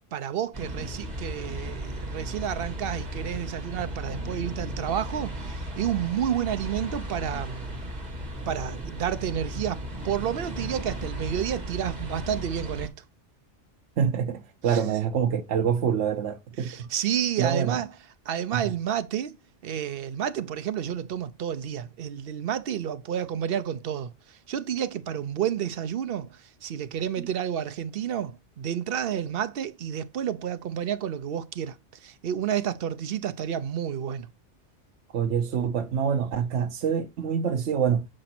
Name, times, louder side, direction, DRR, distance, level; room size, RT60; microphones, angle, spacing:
voice 1, 0.1-7.7 8.5-12.9 14.7-14.8 16.6-17.9 18.3-19.4 19.6-34.3, right 9 dB, 60° right, 0.8 m, -30 dB
sound 1, 0.5-12.9, right 1 dB, 35° right, 1.8 m, -35 dB
voice 2, 14.0-16.9 17.4-17.8 18.5-18.6 27.2-27.3 35.1-38.1, right 7 dB, 85° right, 1.0 m, -26 dB
7.6 x 5.1 x 4.3 m
omnidirectional pair, 1.2 m